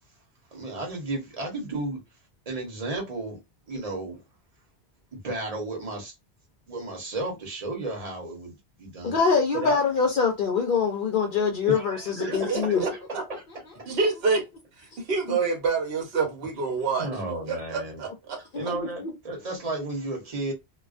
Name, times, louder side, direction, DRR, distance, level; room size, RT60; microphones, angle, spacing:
voice 1, 0.5-2.0 2.5-3.4 3.7-4.2 5.1-6.1 6.7-9.2 9.5-9.8 11.7-13.4 13.8-13.9 17.0-18.0 18.5-20.5, right 2 dB, 40° right, 0.9 m, -33 dB
voice 2, 9.0-12.8 15.3-15.4 18.5-18.7, left 5 dB, 60° left, 0.7 m, -24 dB
voice 3, 12.3-12.9 13.9-14.4 14.8-17.1 17.5-18.4, right 4 dB, 70° right, 1.0 m, -27 dB
2.3 x 2.2 x 2.4 m
omnidirectional pair, 1.1 m